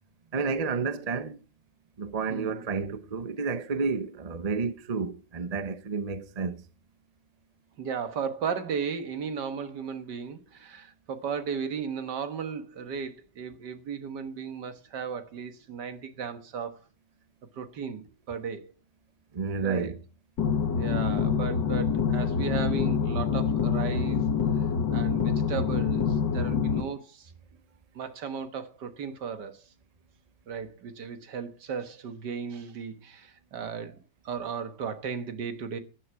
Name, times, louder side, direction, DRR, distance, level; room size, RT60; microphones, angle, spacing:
voice 1, 0.3-1.4 2.0-6.6 19.3-20.0, right 4 dB, 35° right, 0.7 m, -30 dB
voice 2, 2.3-2.7 7.8-16.8 17.5-18.7 19.6-19.9 20.7-24.2 24.9-27.3 28.0-29.7 30.5-34.0 34.2-35.8, right 6 dB, 70° right, 2.0 m, -35 dB
sound 1, 20.4-26.8, left 6 dB, 80° left, 2.4 m, -26 dB
14.5 x 10.5 x 4.7 m
omnidirectional pair, 1.9 m